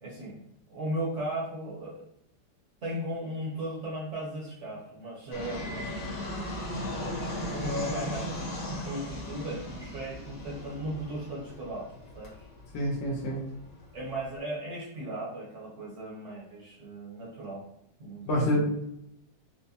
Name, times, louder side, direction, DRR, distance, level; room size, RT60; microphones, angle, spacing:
voice 1, 0.0-2.0 2.8-5.9 7.0-12.4 13.9-17.6 18.0-18.6, right 1 dB, 55° right, -3 dB, 0.9 m, -37 dB
Fixed-wing aircraft airplane, 5.3-14.3, left 1 dB, 55° left, 1.4 m, -37 dB
voice 2, 12.7-13.4 18.3-19.0, equal, 90° left, -1 dB, 1.6 m, -27 dB
4.6 x 2.1 x 2.7 m, 0.76 s
omnidirectional pair, 1.9 m